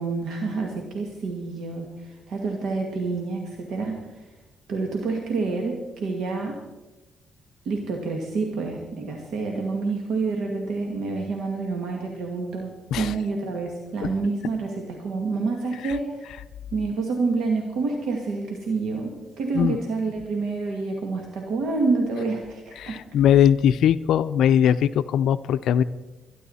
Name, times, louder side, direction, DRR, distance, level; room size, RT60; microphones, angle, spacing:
voice 1, 0.0-4.2 4.7-6.6 7.7-16.3 16.7-23.0, right 3 dB, 75° right, 2 dB, 1.8 m, -28 dB
voice 2, 22.8-25.8, left 9 dB, 75° left, 12 dB, 0.4 m, -20 dB
22.0 x 11.0 x 4.2 m, 1.1 s
cardioid pair, 90°, 0 cm